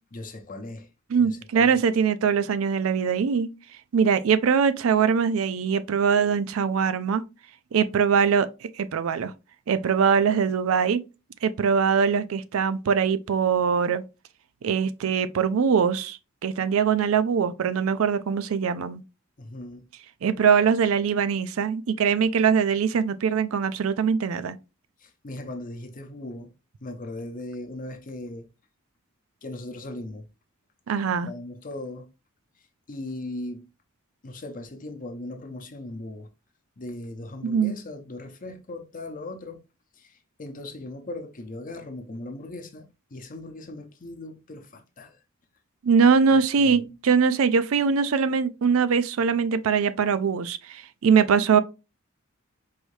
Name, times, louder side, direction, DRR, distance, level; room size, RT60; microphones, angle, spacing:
voice 1, 0.1-0.9 1.2-1.8 19.4-19.9 25.0-26.5 26.8-28.5 29.4-30.3 31.3-32.0 32.9-33.7 34.2-36.3 36.8-39.6 40.0-45.2 46.6-46.8, left 2 dB, 40° left, 0.7 m, -38 dB
voice 2, 1.1-3.5 3.9-7.2 7.7-9.3 9.7-11.0 11.4-14.0 14.6-19.0 20.2-24.6 30.9-31.3 37.4-37.7 45.8-51.6, right 6 dB, 75° right, 0.4 m, -22 dB
4.7 x 2.7 x 3.2 m
head